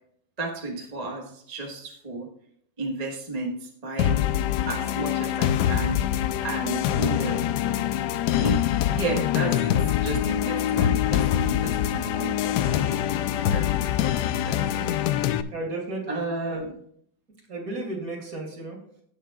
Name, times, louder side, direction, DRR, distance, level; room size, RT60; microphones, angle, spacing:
voice 1, 0.4-2.3 2.8-4.3 4.7-7.4 8.4-8.6 8.9-9.7 10.0-13.0 13.5-13.9 14.4-15.2 16.1-16.7, right 3 dB, 25° right, -1 dB, 1.3 m, -33 dB
sound 1, 4.0-15.4, left 11 dB, 75° left, 1.0 m, -24 dB
voice 2, 14.5-15.0 15.5-16.2 16.5-16.6 17.5-18.8, right 2 dB, 45° right, 0 dB, 2.5 m, -34 dB
16.5 x 7.4 x 2.4 m, 0.65 s
omnidirectional pair, 2.1 m